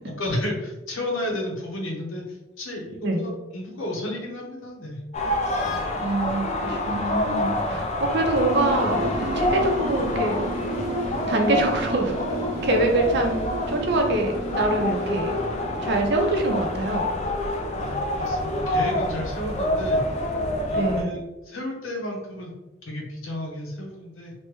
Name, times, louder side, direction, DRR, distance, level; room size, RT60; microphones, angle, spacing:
voice 1, 0.0-5.0 17.8-20.0 20.6-22.5 22.8-24.3, left 1 dB, 90° left, -1 dB, 0.8 m, -32 dB
sound 1, 5.1-21.0, left 1 dB, 35° left, 0.3 m, -27 dB
voice 2, 6.0-10.4 11.3-12.2 12.6-13.4 13.7-15.3 15.8-17.1 20.7-21.1, right 2 dB, 55° right, 2 dB, 0.5 m, -24 dB
sound 2, 8.5-17.4, right 1 dB, 85° right, 1.1 m, -33 dB
3.2 x 2.1 x 3.0 m, 1.0 s
head